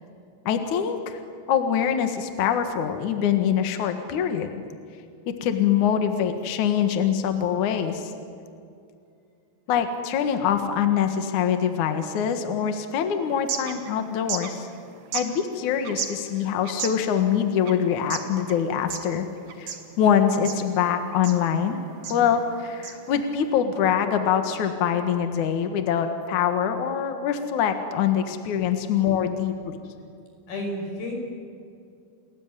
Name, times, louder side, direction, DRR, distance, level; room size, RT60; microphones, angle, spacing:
voice 1, 0.5-1.2 1.5-4.5 5.3-8.1 9.7-14.7 15.1-19.3 19.6-21.8 22.1-29.8, left 8 dB, 65° left, 7 dB, 1.9 m, -24 dB
sound 1, 13.2-23.5, right 7 dB, 50° right, 2.4 m, -37 dB
voice 2, 30.5-31.2, left 1 dB, 45° left, 1 dB, 7.4 m, -31 dB
29.5 x 20.5 x 9.8 m, 2.5 s
omnidirectional pair, 5.8 m